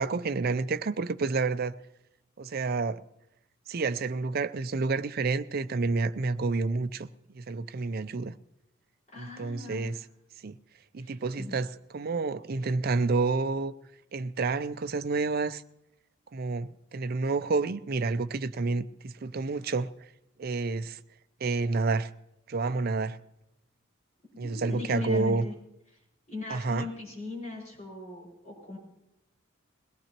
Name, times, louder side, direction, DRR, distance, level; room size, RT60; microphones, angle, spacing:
voice 1, 0.0-1.8 2.4-3.0 3.7-8.3 9.2-10.1 10.4-10.6 10.9-13.7 14.1-15.6 16.3-19.9 20.4-21.0 21.4-22.1 22.5-23.2 24.4-25.4 26.5-26.9, right 3 dB, 45° right, 0.5 m, -29 dB
voice 2, 9.1-9.9 11.0-11.5 24.3-25.5 26.3-28.8, left 3 dB, 35° left, 6.0 m, -39 dB
21.5 x 17.5 x 3.0 m
head